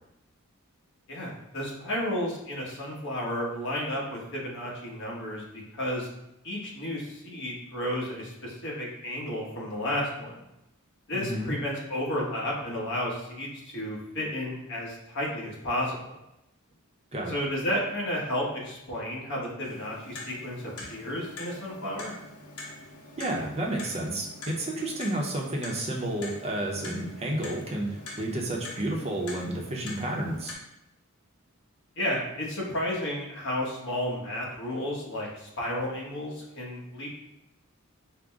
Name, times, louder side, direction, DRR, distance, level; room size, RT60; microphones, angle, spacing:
voice 1, 1.1-5.5 5.7-6.1 6.4-10.4 11.1-16.2 17.3-22.1 32.0-37.1, left 1 dB, 60° left, -3 dB, 1.2 m, -32 dB
voice 2, 11.1-11.5 17.1-17.3 23.2-30.5, right 1 dB, 30° right, -1 dB, 0.7 m, -31 dB
Clock, 19.6-30.5, left 2 dB, 80° left, 0.9 m, -44 dB
5.0 x 2.1 x 3.5 m, 0.87 s
head